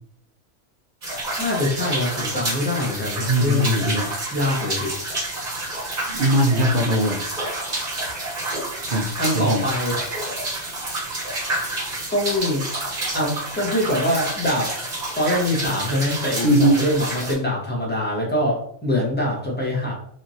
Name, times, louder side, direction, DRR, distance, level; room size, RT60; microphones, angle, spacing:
sound 1, 1.0-17.3, right 2 dB, 35° right, 0.9 m, -29 dB
voice 1, 1.4-4.9 9.2-10.5 12.1-12.6 13.1-14.7 15.2-20.0, left 1 dB, 10° left, -4 dB, 0.6 m, -24 dB
voice 2, 3.3-4.1 6.1-7.3 8.9-9.6 16.4-16.8, right 1 dB, 60° right, -1 dB, 0.5 m, -20 dB
3.0 x 2.5 x 2.6 m, 0.63 s
omnidirectional pair, 1.4 m